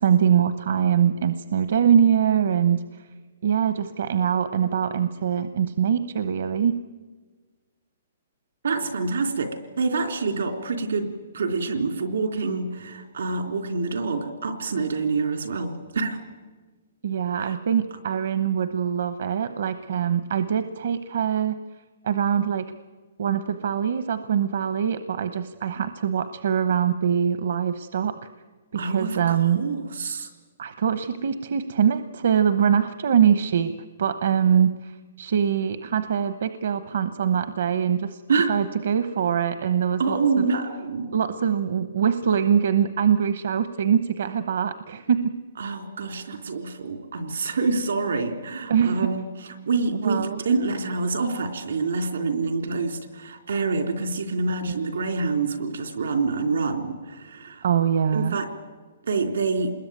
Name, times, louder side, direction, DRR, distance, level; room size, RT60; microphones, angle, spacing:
voice 1, 0.0-2.8 3.4-6.7 17.0-21.6 22.0-22.7 23.2-28.1 28.7-29.6 30.6-33.7 34.0-38.2 38.5-40.5 41.1-45.3 48.7-49.1 50.0-50.4 54.5-54.7 57.6-58.4, right 8 dB, 60° right, 11 dB, 1.0 m, -23 dB
voice 2, 8.6-11.1 11.3-16.2 17.4-17.6 28.7-30.3 38.3-38.6 40.0-41.2 45.6-57.6 58.1-58.5 59.1-59.7, right 4 dB, 80° right, 6 dB, 3.5 m, -26 dB
27.0 x 21.0 x 9.3 m, 1.4 s
hypercardioid pair, 170°, 0 cm